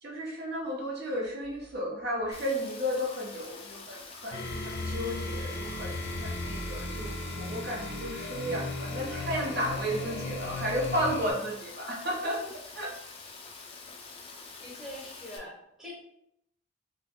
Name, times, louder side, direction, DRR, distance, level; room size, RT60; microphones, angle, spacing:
voice 1, 0.0-5.9 6.2-12.5 12.7-13.0, equal, 50° right, -2 dB, 0.8 m, -33 dB
Rain, 2.3-15.4, left 4 dB, 25° left, 0.3 m, -46 dB
sound 1, 4.3-11.3, left 2 dB, 80° left, 0.6 m, -36 dB
voice 2, 14.6-15.9, left 1 dB, 5° right, -6 dB, 0.7 m, -43 dB
2.9 x 2.2 x 3.4 m, 0.75 s
head